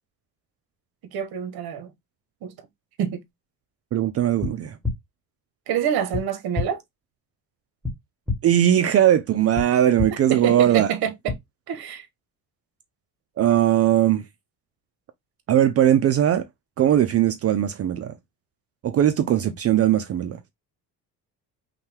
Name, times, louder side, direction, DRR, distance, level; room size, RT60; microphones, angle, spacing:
voice 1, 1.1-1.9 2.4-2.5 3.0-3.2 5.7-6.8 10.3-11.4 11.7-12.1, right 8 dB, 65° right, 1.2 m, -26 dB
voice 2, 3.9-4.8 8.4-10.9 13.4-14.2 15.5-16.5 16.8-18.1 18.8-20.4, right 11 dB, 40° right, 0.4 m, -19 dB
sound 1, 4.4-4.5 4.8-4.9 6.1-6.2 6.5-6.6 7.8-7.9 8.3-8.4 9.5-9.6 10.0-10.1 11.3-11.4, left 4 dB, ahead, 1.3 m, -25 dB
5.6 x 2.2 x 3.2 m
cardioid pair, 165°, 40 cm